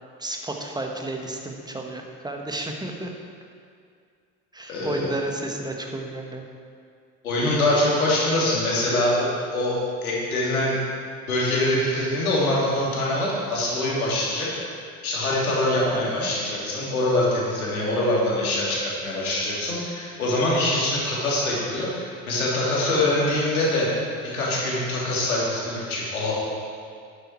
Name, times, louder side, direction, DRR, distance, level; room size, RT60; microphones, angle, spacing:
voice 1, 0.2-3.1 4.5-6.4 15.9-16.3, right 2 dB, 10° right, 2 dB, 1.5 m, -32 dB
voice 2, 4.7-5.1 7.2-10.7 11.3-14.5 15.0-26.3, left 1 dB, 80° left, -5 dB, 2.8 m, -24 dB
11.0 x 9.0 x 4.6 m, 2.2 s
figure-of-eight pair, 65°, 42 cm